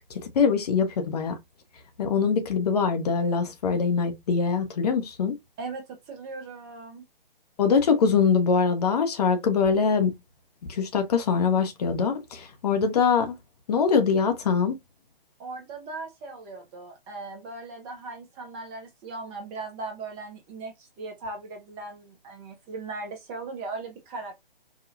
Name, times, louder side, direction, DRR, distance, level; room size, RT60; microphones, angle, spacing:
voice 1, 0.0-1.4 2.0-5.4 7.6-10.2 10.7-13.4 13.7-14.8, left 5 dB, 40° left, 0.8 m, -23 dB
voice 2, 5.6-7.0 15.4-24.4, right 3 dB, 20° right, 0.8 m, -38 dB
4.9 x 2.3 x 2.5 m
figure-of-eight pair, 135°, 29 cm